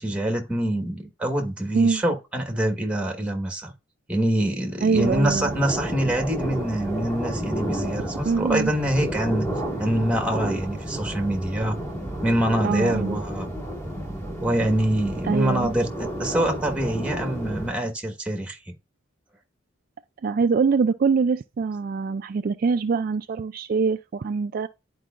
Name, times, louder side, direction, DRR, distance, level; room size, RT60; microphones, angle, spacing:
voice 1, 0.0-3.7 4.1-9.5 9.8-11.8 12.2-13.5 14.4-18.7, right 1 dB, 5° right, 1.3 m, -25 dB
voice 2, 1.7-2.0 4.8-5.6 8.3-8.7 12.6-13.2 15.2-15.7 20.2-24.7, right 5 dB, 50° right, 0.3 m, -23 dB
sound 1, 4.9-17.7, right 1 dB, 15° left, 1.8 m, -31 dB
11.0 x 4.6 x 2.4 m
head